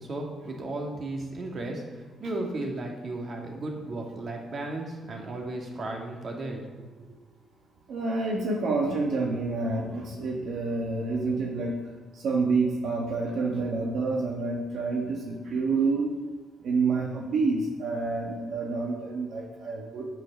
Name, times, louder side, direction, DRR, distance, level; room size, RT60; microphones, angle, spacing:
voice 1, 0.0-6.9, right 2 dB, 45° right, 1 dB, 2.0 m, -35 dB
voice 2, 7.9-11.8 12.1-16.1 16.6-20.0, right 3 dB, 70° right, -1 dB, 1.4 m, -28 dB
8.4 x 6.3 x 5.7 m, 1.4 s
cardioid pair, 90°, 0 cm